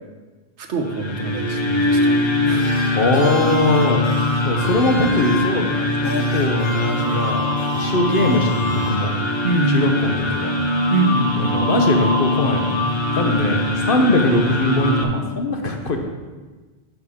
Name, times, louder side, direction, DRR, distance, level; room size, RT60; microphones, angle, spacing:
voice 1, 0.6-2.7 4.5-4.6 9.4-9.9 10.2-10.4 10.9-11.6, right 4 dB, 75° right, 5 dB, 1.2 m, -24 dB
sound 1, 0.8-15.0, left 1 dB, 30° left, 0.7 m, -22 dB
sound 2, 2.6-5.8 6.0-9.4, left 3 dB, 90° left, 1.5 m, -33 dB
voice 2, 2.9-4.0 4.4-7.5 7.7-9.1 9.7-10.5 11.4-12.8 13.1-16.0, left 2 dB, 55° left, 3 dB, 1.2 m, -21 dB
11.0 x 6.7 x 3.6 m, 1.3 s
omnidirectional pair, 1.2 m